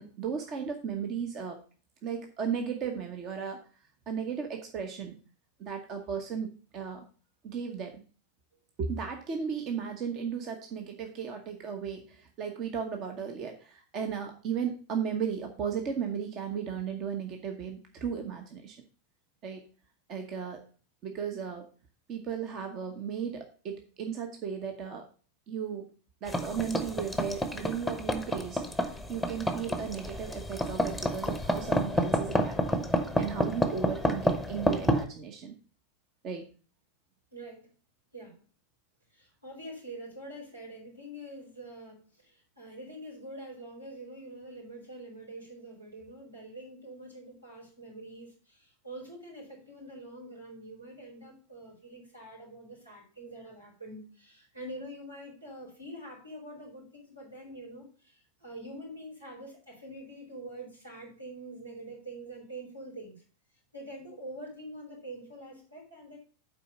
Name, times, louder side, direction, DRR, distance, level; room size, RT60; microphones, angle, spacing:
voice 1, 0.0-1.6 2.0-3.6 4.1-5.1 5.6-7.0 7.4-8.0 8.8-18.8 19.4-19.6 20.1-20.6 21.0-21.7 22.1-25.1 25.5-25.9 26.2-35.5 36.2-36.4, right 7 dB, 35° right, 4 dB, 1.1 m, -35 dB
sound 1, 26.3-35.0, equal, ahead, 0.9 m, -30 dB
voice 2, 37.3-37.7 38.1-38.4 39.1-63.2 63.7-66.2, right 1 dB, 85° right, -3 dB, 4.2 m, -45 dB
8.2 x 4.8 x 5.2 m, 0.38 s
figure-of-eight pair, 90°, 0 cm